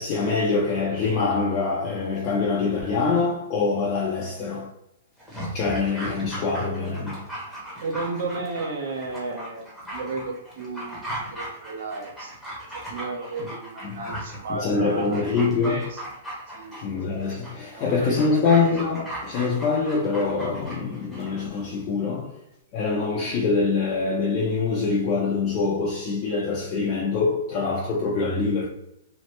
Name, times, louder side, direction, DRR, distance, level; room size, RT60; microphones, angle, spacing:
voice 1, 0.0-4.7 5.5-7.6 13.9-14.0 14.5-15.8 16.8-22.4 22.7-28.7, left 4 dB, 30° left, 0.5 m, -24 dB
Dog, 5.2-21.4 21.7-21.8, right 1 dB, 5° right, 0.8 m, -37 dB
voice 2, 7.8-12.3 12.7-16.0 16.5-16.7 17.7-18.6, right 3 dB, 60° right, 0.8 m, -33 dB
3.1 x 2.0 x 3.0 m
hypercardioid pair, 160°, 0 cm